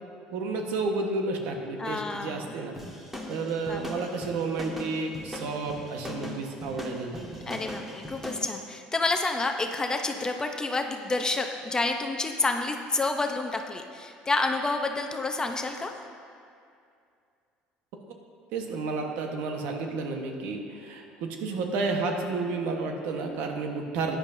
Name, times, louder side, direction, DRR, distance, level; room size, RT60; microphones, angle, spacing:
voice 1, 0.3-2.7 3.3-7.8 18.5-24.2, right 3 dB, 75° right, 3 dB, 1.3 m, -31 dB
voice 2, 1.8-2.5 3.7-4.1 7.5-15.9, left 3 dB, 20° left, 5 dB, 0.7 m, -29 dB
sound 1, 2.8-8.5, left 1 dB, 5° right, 1.7 m, -39 dB
14.0 x 10.0 x 2.7 m, 2.4 s
supercardioid pair, 90°, 3 cm